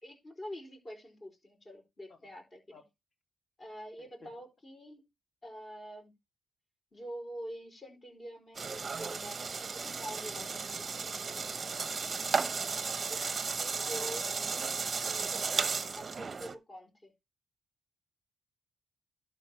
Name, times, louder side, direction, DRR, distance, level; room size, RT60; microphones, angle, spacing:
voice 1, 0.0-2.8 3.6-5.0 5.4-6.1 6.9-10.9 12.7-13.3 13.6-14.3 15.1-17.1, equal, 30° left, 4.3 m, -46 dB
voice 2, 4.0-4.3 11.7-12.2 13.9-14.1, left 5 dB, 45° left, 3.1 m, -54 dB
sound 1, 8.5-16.5, right 5 dB, 35° right, 0.8 m, -34 dB
12.0 x 4.2 x 4.4 m
cardioid pair, 90°, 0 cm